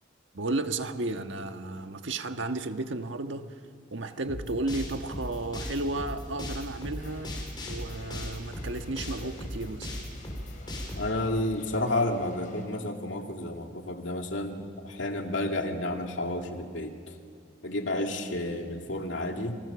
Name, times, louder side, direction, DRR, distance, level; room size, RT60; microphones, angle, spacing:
voice 1, 0.3-3.6 3.9-7.3 7.6-9.9, right 2 dB, 75° right, 7 dB, 1.4 m, -33 dB
sound 1, 4.2-11.1, left 1 dB, 25° left, 5.1 m, -37 dB
sound 2, 7.0-12.6, left 2 dB, 40° left, 5.2 m, -54 dB
voice 2, 10.9-17.2 17.6-19.6, left 1 dB, 75° left, 3 dB, 2.5 m, -31 dB
29.0 x 24.5 x 7.0 m, 2.2 s
head